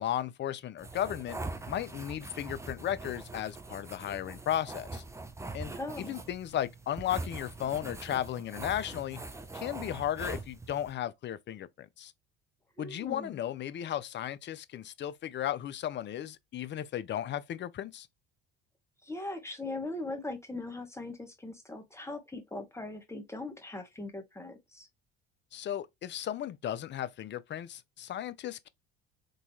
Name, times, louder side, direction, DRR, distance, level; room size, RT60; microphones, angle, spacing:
voice 1, 0.0-1.4 1.7-5.0 5.5-9.2 9.5-12.1 12.8-18.1 25.5-28.7, left 11 dB, 35° left, 0.4 m, -35 dB
sound 1, 0.8-10.9, right 2 dB, 10° right, 0.6 m, -43 dB
voice 2, 5.8-6.2 12.8-13.4 19.0-24.9, left 2 dB, 10° left, 1.1 m, -40 dB
3.8 x 2.8 x 2.7 m
hypercardioid pair, 70°, 32 cm